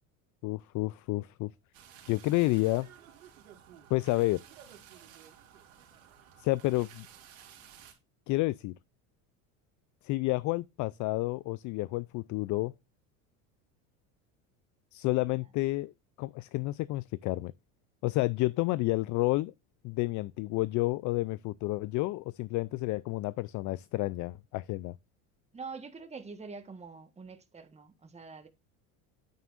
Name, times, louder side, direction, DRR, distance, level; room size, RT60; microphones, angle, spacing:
voice 1, 0.4-1.5 2.1-2.9 3.9-4.4 6.4-7.1 8.3-8.7 10.0-12.7 14.9-17.5 18.0-19.5 19.8-25.0, left 20 dB, 45° left, 0.5 m, -30 dB
sound 1, 1.7-7.9, right 9 dB, 90° right, 3.0 m, -53 dB
voice 2, 25.5-28.5, right 4 dB, 15° right, 1.4 m, -45 dB
9.4 x 9.1 x 2.6 m
supercardioid pair, 95°, 41 cm